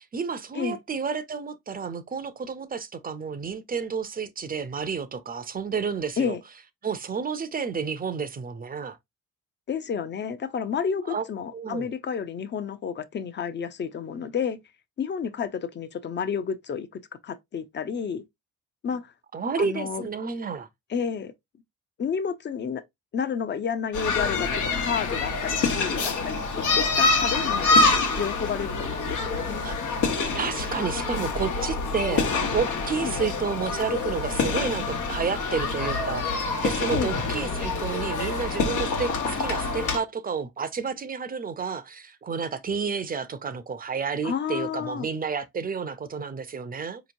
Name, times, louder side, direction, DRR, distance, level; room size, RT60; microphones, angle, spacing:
voice 1, 0.0-6.4 6.8-9.0 11.1-11.2 11.5-11.9 19.3-20.7 29.6-29.8 30.3-47.0, right 5 dB, 30° right, 0.5 m, -30 dB
voice 2, 9.7-14.6 15.0-18.2 18.8-19.1 19.6-20.1 20.9-21.3 22.0-22.8 23.1-27.9 28.2-29.7 33.0-33.2 36.9-37.1 44.2-45.1, left 7 dB, 35° left, 0.6 m, -30 dB
sound 1, 23.9-40.0, left 3 dB, 90° left, 1.1 m, -26 dB
4.3 x 2.9 x 2.6 m
cardioid pair, 90°, 30 cm